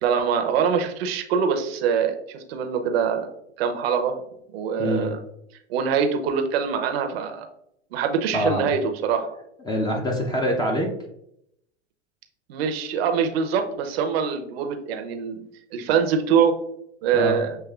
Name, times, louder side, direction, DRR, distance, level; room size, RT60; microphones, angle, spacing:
voice 1, 0.0-3.3 3.6-4.2 4.5-5.2 5.7-7.5 7.9-9.3 12.5-15.4 15.7-16.5 17.0-17.6, right 6 dB, 65° right, 5 dB, 0.9 m, -24 dB
voice 2, 8.3-8.7 9.7-10.9 17.1-17.4, equal, 10° left, 0 dB, 0.7 m, -24 dB
7.0 x 3.1 x 2.4 m, 0.76 s
hypercardioid pair, 95°, 33 cm